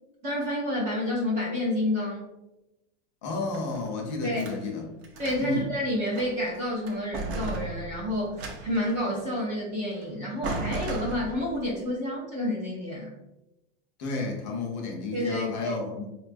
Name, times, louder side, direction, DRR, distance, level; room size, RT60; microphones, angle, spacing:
voice 1, 0.2-2.3 4.2-4.4 5.2-13.2 15.1-15.8, left 1 dB, 20° right, -4 dB, 0.5 m, -29 dB
voice 2, 3.2-4.9 5.4-5.7 14.0-16.1, left 3 dB, 40° left, 1 dB, 0.6 m, -31 dB
sound 1, 3.3-4.6 5.0-5.6 6.0-6.6 6.9-9.0 10.0-10.1 10.4-11.6, right 2 dB, 65° right, 0.7 m, -36 dB
3.9 x 2.3 x 2.5 m, 0.96 s
supercardioid pair, 170°, 34 cm